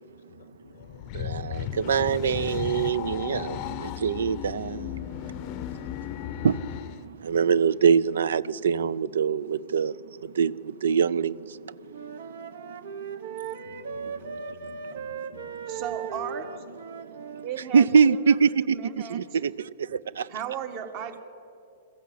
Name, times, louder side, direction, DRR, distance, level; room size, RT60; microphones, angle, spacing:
voice 1, 0.0-1.1 13.6-16.3 19.9-20.0, left 8 dB, 80° left, 0.7 m, -54 dB
sound 1, 0.8-7.0, left 13 dB, 40° left, 0.6 m, -35 dB
voice 2, 1.1-11.7 13.7-15.8 17.3-17.4 17.7-20.3, right 6 dB, 90° right, 0.5 m, -25 dB
Wind instrument woodwind instrument, 11.9-17.5, right 6 dB, 70° right, 1.3 m, -37 dB
voice 3, 15.7-16.5 17.4-17.9 18.2-19.2 20.3-21.2, right 8 dB, 40° right, 1.4 m, -35 dB
22.0 x 14.5 x 8.6 m
hypercardioid pair, 150°, 0 cm